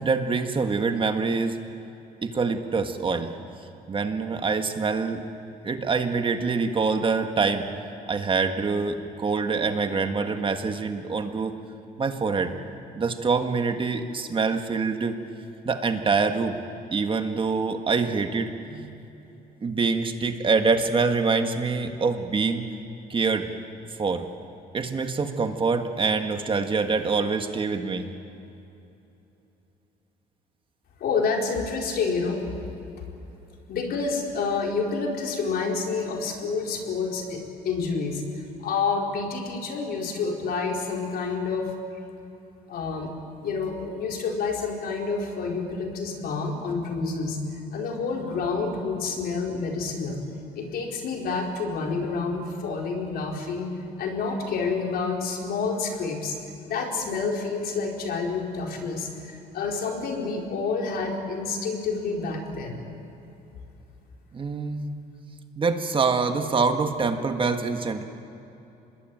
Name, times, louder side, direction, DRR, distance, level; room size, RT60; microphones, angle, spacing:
voice 1, 0.0-1.6 2.2-3.3 3.9-5.2 5.6-7.6 8.1-11.6 12.0-12.5 13.0-15.1 15.6-16.6 16.9-19.1 19.6-22.6 23.1-23.5 24.0-24.3 24.7-28.1 64.3-64.8 65.6-68.0, right 4 dB, 30° right, 6 dB, 1.7 m, -25 dB
voice 2, 31.0-32.5 33.7-38.2 38.6-41.7 42.7-43.1 43.4-47.4 47.7-50.2 50.6-53.7 54.0-56.4 56.6-62.8, left 4 dB, 65° left, 1 dB, 4.4 m, -28 dB
25.5 x 20.5 x 9.2 m, 2.9 s
cardioid pair, 110°, 17 cm